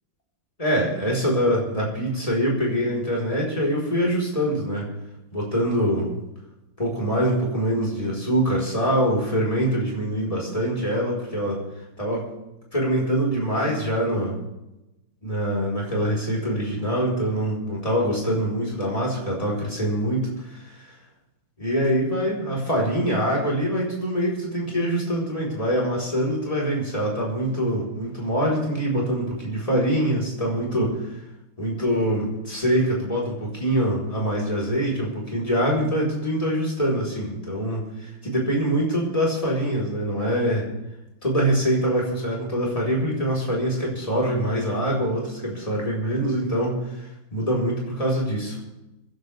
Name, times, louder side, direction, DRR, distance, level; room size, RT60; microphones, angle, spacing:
voice 1, 0.6-4.9 5.3-6.1 6.8-11.6 12.0-12.3 12.7-14.4 15.2-20.7 21.6-30.9 31.6-40.7 41.2-48.6, equal, 15° left, -4 dB, 4.4 m, -24 dB
25.0 x 11.5 x 3.5 m, 0.93 s
omnidirectional pair, 2.3 m